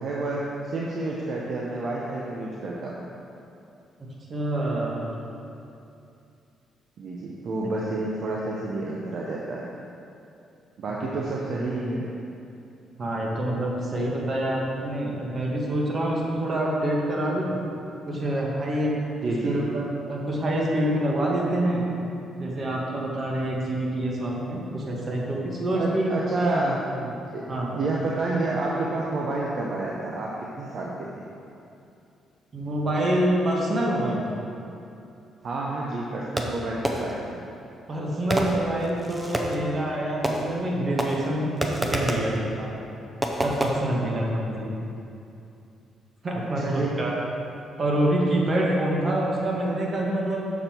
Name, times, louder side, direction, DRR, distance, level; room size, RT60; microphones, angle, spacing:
voice 1, 0.0-3.0 7.0-9.7 10.8-12.1 19.2-19.6 25.7-31.1 35.4-37.4 46.6-47.0, right 2 dB, 60° right, -3 dB, 0.8 m, -29 dB
voice 2, 4.3-5.1 10.9-11.1 13.0-17.5 18.1-19.0 19.4-21.8 22.4-26.1 26.5-26.7 27.5-27.7 32.5-34.2 37.9-42.7 43.4-44.7 46.2-47.1 47.8-50.4, right 1 dB, 40° right, -3 dB, 1.5 m, -26 dB
Fireworks, 36.4-37.3 38.3-39.7 40.2-40.7 41.0-42.4 43.2-43.7, right 1 dB, 15° right, 0.8 m, -28 dB
6.7 x 6.2 x 4.4 m, 2.7 s
cardioid pair, 90°, 0 cm